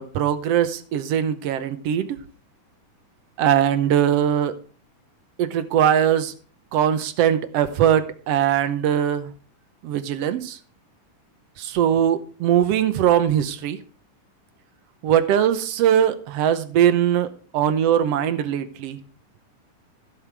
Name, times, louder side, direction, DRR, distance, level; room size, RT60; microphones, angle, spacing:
voice 1, 0.0-2.2 3.4-4.6 5.4-6.3 6.7-9.3 9.8-10.6 11.6-13.8 15.0-19.0, right 9 dB, 75° right, 11 dB, 1.4 m, -21 dB
15.0 x 6.8 x 4.7 m, 0.40 s
omnidirectional pair, 3.9 m